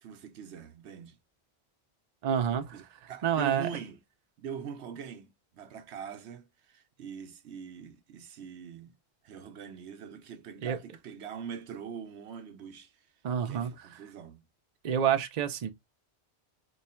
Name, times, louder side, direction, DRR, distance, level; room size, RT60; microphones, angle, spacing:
voice 1, 0.0-1.2 2.7-4.0 4.4-9.0 9.2-13.1 13.4-14.4, right 7 dB, 85° right, 1.0 m, -43 dB
voice 2, 2.2-2.8 3.2-3.7 10.6-10.8 13.2-13.9 14.8-15.7, right 8 dB, 50° right, 0.6 m, -28 dB
3.0 x 2.3 x 4.2 m
omnidirectional pair, 1.1 m